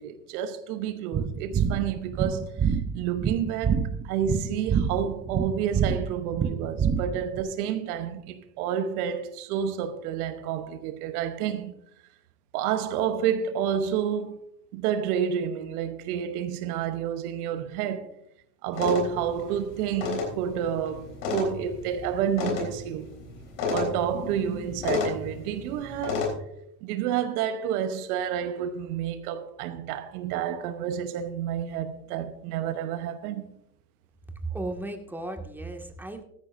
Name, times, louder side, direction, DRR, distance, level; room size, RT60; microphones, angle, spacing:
voice 1, 0.0-11.7 12.5-14.4 14.7-18.1 18.6-23.1 23.7-26.3 26.8-33.5, right 8 dB, 70° right, 1.1 m, -29 dB
sound 1, 1.1-7.4, right 7 dB, 25° right, 1.0 m, -27 dB
sound 2, 18.7-26.3, left 5 dB, 65° left, 3.9 m, -32 dB
voice 2, 34.4-36.2, right 2 dB, 5° right, 1.9 m, -35 dB
15.0 x 13.5 x 2.6 m
hypercardioid pair, 75°, 46 cm